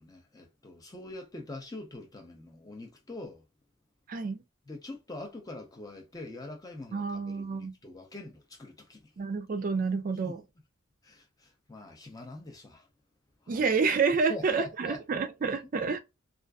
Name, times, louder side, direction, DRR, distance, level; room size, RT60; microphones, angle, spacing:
voice 1, 0.0-3.4 4.7-9.1 10.2-10.3 11.0-12.9 13.4-13.7 14.3-15.0, left 2 dB, 15° left, 0.5 m, -44 dB
voice 2, 4.1-4.4 6.9-7.8 9.2-10.4 13.5-16.0, right 5 dB, 40° right, 0.3 m, -29 dB
2.4 x 2.4 x 2.2 m
head